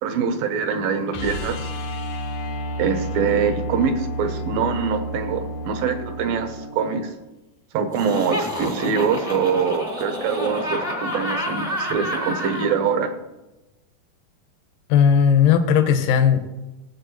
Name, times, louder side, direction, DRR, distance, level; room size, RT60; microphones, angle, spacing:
voice 1, 0.0-1.7 2.8-7.1 7.7-13.1, right 6 dB, 75° right, 8 dB, 2.5 m, -24 dB
sound 1, 1.1-7.1 9.6-9.7, equal, 90° left, 3.8 m, -31 dB
Laughter, 7.9-12.7, equal, 15° left, 0.7 m, -29 dB
voice 2, 14.9-16.5, left 8 dB, 70° left, 7 dB, 2.4 m, -16 dB
18.0 x 7.5 x 3.1 m, 1.0 s
omnidirectional pair, 4.4 m